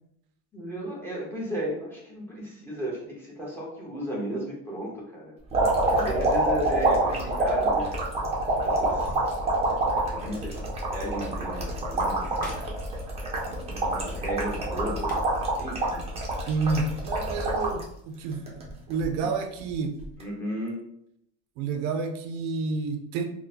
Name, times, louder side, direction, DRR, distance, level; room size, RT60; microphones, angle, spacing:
voice 1, 0.5-5.3 5.9-8.0 8.6-9.1 10.0-10.6 10.9-12.3 13.4-16.0 20.2-20.9, equal, 5° left, -4 dB, 0.8 m, -34 dB
sound 1, 5.5-17.8 18.3-19.1 20.0-20.2, right 2 dB, 20° right, 0.6 m, -26 dB
sound 2, 8.2-9.6 9.9-10.0 10.3-10.4 11.8-12.9 14.7-14.8 15.0-15.5, left 1 dB, 25° left, 0.6 m, -43 dB
voice 2, 16.5-20.0 21.6-23.2, right 4 dB, 75° right, 6 dB, 0.5 m, -29 dB
3.8 x 2.2 x 2.7 m, 0.74 s
cardioid pair, 155°, 34 cm